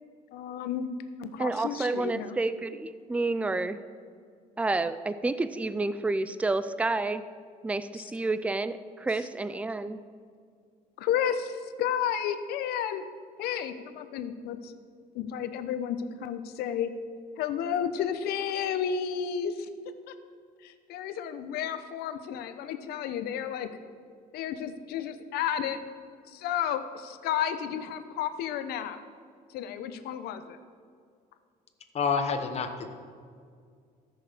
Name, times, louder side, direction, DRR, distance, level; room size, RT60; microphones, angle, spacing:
voice 1, 0.3-0.9 1.2-2.4 7.9-8.1 11.0-13.0 13.4-14.7 15.1-16.9 17.4-19.7 20.1-20.2 20.6-23.7 24.3-25.8 26.3-29.0 29.5-30.6, left 8 dB, 75° left, 11 dB, 0.8 m, -32 dB
voice 2, 1.4-3.8 4.6-7.2 7.6-10.0, right 2 dB, 10° right, 13 dB, 0.4 m, -29 dB
voice 3, 31.9-32.9, left 5 dB, 40° left, 7 dB, 1.1 m, -28 dB
14.0 x 6.4 x 4.9 m, 2.2 s
cardioid pair, 110°, 16 cm